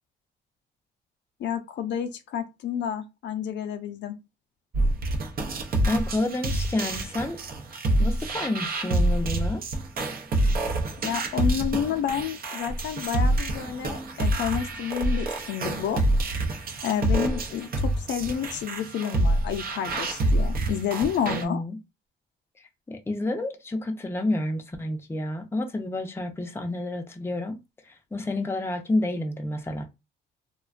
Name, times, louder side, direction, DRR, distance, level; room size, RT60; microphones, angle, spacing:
voice 1, 1.4-4.1 11.0-16.0 16.8-21.6, left 8 dB, 65° left, 0.4 m, -30 dB
sound 1, 4.7-21.4, right 1 dB, 50° right, 0.6 m, -27 dB
voice 2, 5.9-7.4 8.0-9.6 21.3-21.8 22.9-27.6 28.1-29.8, left 2 dB, 10° left, 0.5 m, -29 dB
2.4 x 2.1 x 2.4 m
cardioid pair, 90°, 20 cm